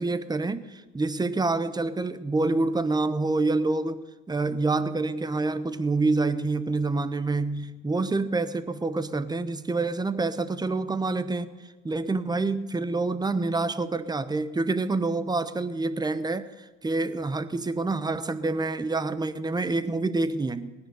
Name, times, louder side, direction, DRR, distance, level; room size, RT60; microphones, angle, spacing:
voice 1, 0.0-11.5 11.8-20.7, right 3 dB, 10° right, 0.9 m, -27 dB
18.5 x 10.5 x 6.8 m
hypercardioid pair, 80°, 40 cm